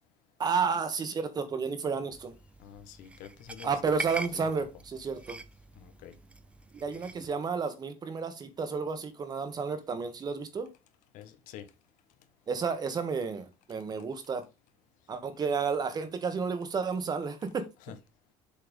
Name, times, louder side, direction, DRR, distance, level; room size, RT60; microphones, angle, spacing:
voice 1, 0.4-2.3 3.6-5.4 6.7-10.7 12.5-14.4 15.1-17.7, right 5 dB, 30° right, 1.5 m, -31 dB
sound 1, 2.1-7.3, right 2 dB, 10° right, 0.6 m, -43 dB
voice 2, 2.6-3.7 4.3-4.5 5.8-6.1 11.1-11.7 17.8-18.0, left 10 dB, 65° left, 1.4 m, -47 dB
7.7 x 4.5 x 5.3 m
cardioid pair, 140°, 14 cm